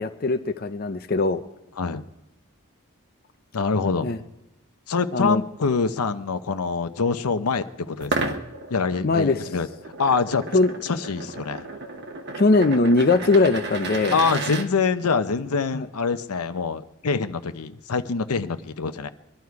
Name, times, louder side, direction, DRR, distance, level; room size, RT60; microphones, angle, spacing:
voice 1, 0.0-1.4 4.0-4.2 5.1-5.4 9.0-9.4 10.5-10.7 12.3-14.2 15.7-15.9, left 3 dB, 40° left, 8 dB, 0.5 m, -20 dB
voice 2, 3.5-4.2 4.9-8.4 8.7-9.7 10.0-10.4 10.8-11.6 14.1-19.1, left 5 dB, 90° left, 10 dB, 0.8 m, -25 dB
sound 1, 8.0-14.7, right 3 dB, 50° right, 1.1 m, -33 dB
22.5 x 11.5 x 4.7 m, 0.93 s
head